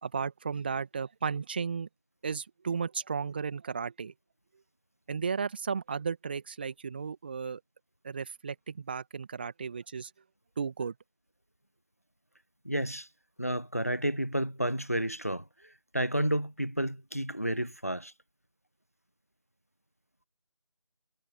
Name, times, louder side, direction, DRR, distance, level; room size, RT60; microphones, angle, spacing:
voice 1, 0.0-1.9 2.2-4.1 5.1-7.6 8.0-10.1 10.6-10.9, right 5 dB, 15° right, 1.9 m, -34 dB
voice 2, 12.6-13.1 13.4-15.4 15.9-18.1, right 1 dB, 25° left, 0.5 m, -31 dB
figure-of-eight pair, 165°, 18 cm